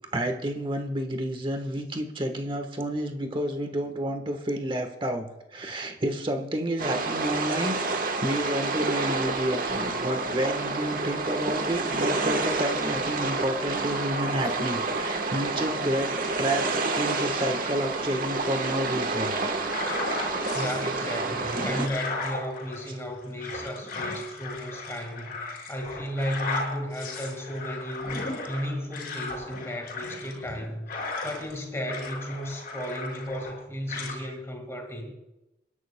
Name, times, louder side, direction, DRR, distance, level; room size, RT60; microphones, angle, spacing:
voice 1, 0.1-19.4 19.7-20.5 34.2-34.3, right 1 dB, 30° right, 5 dB, 1.3 m, -30 dB
sound 1, 6.8-21.9, right 3 dB, 50° right, 1.2 m, -29 dB
sound 2, 19.5-20.8 21.3-31.6 31.8-33.6 33.9-34.2, left 3 dB, 50° left, 5.2 m, -36 dB
voice 2, 20.5-35.1, equal, 15° left, 3 dB, 1.8 m, -34 dB
29.0 x 11.0 x 2.2 m, 0.98 s
head